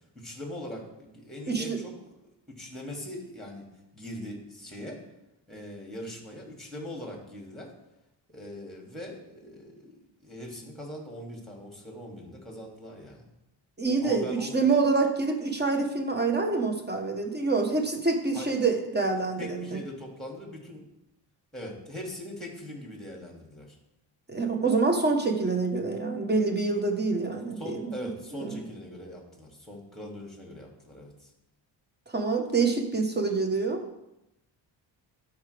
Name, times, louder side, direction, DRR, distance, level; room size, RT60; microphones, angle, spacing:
voice 1, 0.1-2.1 2.5-3.7 3.9-5.0 5.5-7.7 8.3-13.3 14.0-14.5 18.3-18.5 19.4-20.9 21.5-23.8 27.6-31.3, left 1 dB, ahead, 0 dB, 2.5 m, -41 dB
voice 2, 1.5-1.8 13.8-19.8 24.3-27.9 28.3-28.6 32.1-33.9, right 4 dB, 20° right, 4 dB, 1.2 m, -26 dB
12.5 x 4.9 x 3.5 m, 0.90 s
cardioid pair, 90°, 47 cm